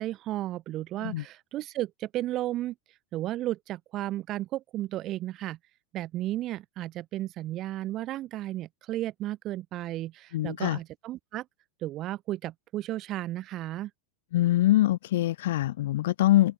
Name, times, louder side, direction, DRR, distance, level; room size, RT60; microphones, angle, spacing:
voice 1, 0.0-2.7 3.1-5.6 5.9-11.4 11.8-13.9, right 14 dB, 35° right, 3.3 m, -33 dB
voice 2, 10.3-10.8 14.3-16.5, left 15 dB, 55° left, 1.2 m, -24 dB
open air
figure-of-eight pair, 90°, 0 cm